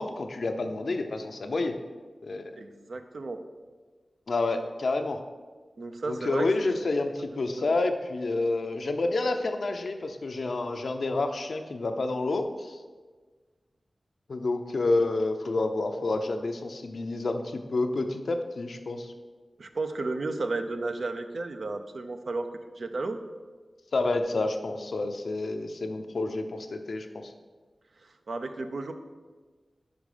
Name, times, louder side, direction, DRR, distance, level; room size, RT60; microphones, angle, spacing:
voice 1, 0.0-1.8 2.2-2.6 4.3-5.2 6.1-12.8 14.3-19.1 23.9-27.3, left 2 dB, 80° left, 6 dB, 0.5 m, -29 dB
voice 2, 2.6-3.4 5.8-6.7 7.5-7.6 19.6-22.5 22.8-23.2 28.0-28.9, right 3 dB, 80° right, 7 dB, 0.5 m, -33 dB
5.2 x 5.1 x 4.9 m, 1.4 s
cardioid pair, 50°, 0 cm